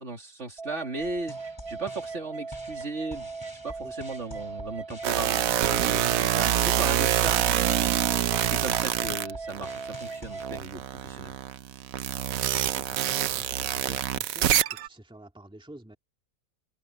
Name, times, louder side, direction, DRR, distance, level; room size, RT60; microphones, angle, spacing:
voice 1, 0.0-3.3 3.6-11.4, right 3 dB, 55° right, 3.1 m, -37 dB
sound 1, 0.6-10.6, right 4 dB, 25° right, 2.7 m, -39 dB
sound 2, 1.0-10.5, left 1 dB, 15° left, 4.3 m, -47 dB
sound 3, 5.0-10.0 10.4-14.9, right 11 dB, 75° right, 1.1 m, -26 dB
voice 2, 12.6-16.0, right 1 dB, 5° right, 2.2 m, -49 dB
open air
omnidirectional pair, 1.5 m